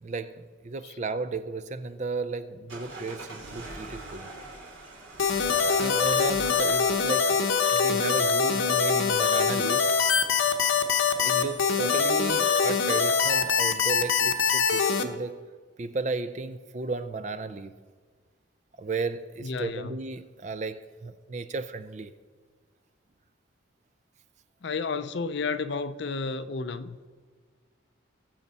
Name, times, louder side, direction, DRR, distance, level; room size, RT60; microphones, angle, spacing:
voice 1, 0.0-4.3 5.8-7.5 7.7-9.8 11.1-15.4 15.8-17.7 18.8-22.1, right 3 dB, 35° right, 0.4 m, -34 dB
sound 1, 2.7-12.9, right 2 dB, 85° right, 3.0 m, -45 dB
sound 2, 5.2-15.0, left 5 dB, 85° left, 0.9 m, -23 dB
voice 2, 19.4-20.0 24.6-27.0, left 4 dB, 60° left, 0.5 m, -32 dB
20.0 x 7.2 x 4.1 m
head